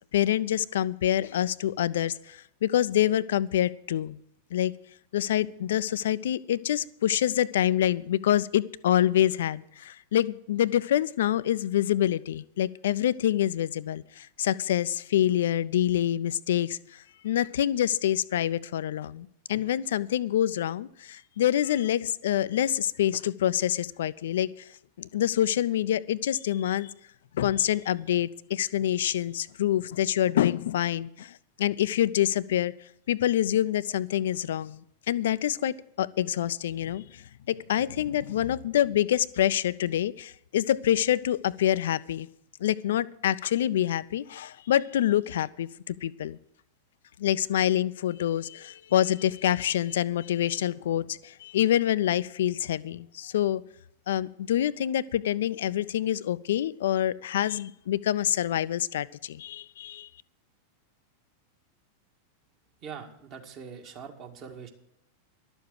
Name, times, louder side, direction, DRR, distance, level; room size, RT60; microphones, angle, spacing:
voice 1, 0.1-4.2 4.5-4.7 5.1-16.8 17.2-24.5 25.0-26.9 27.3-32.7 33.1-37.2 37.5-42.3 42.6-46.4 47.2-53.6 54.1-60.1, left 11 dB, 60° left, 17 dB, 0.4 m, -26 dB
voice 2, 62.8-64.7, right 6 dB, 40° right, 3 dB, 2.0 m, -42 dB
12.0 x 7.1 x 9.2 m, 0.73 s
figure-of-eight pair, 90°, 0 cm